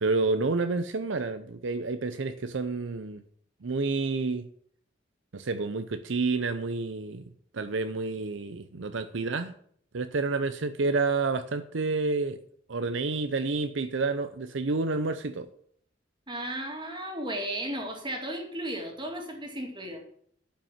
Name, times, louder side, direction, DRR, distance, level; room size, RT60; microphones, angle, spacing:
voice 1, 0.0-3.2 3.6-4.5 5.3-7.2 7.5-9.5 9.9-12.4 12.7-15.5, right 3 dB, 70° right, 0.7 m, -29 dB
voice 2, 16.3-20.0, right 1 dB, 25° right, 2.4 m, -35 dB
11.5 x 5.6 x 7.3 m
head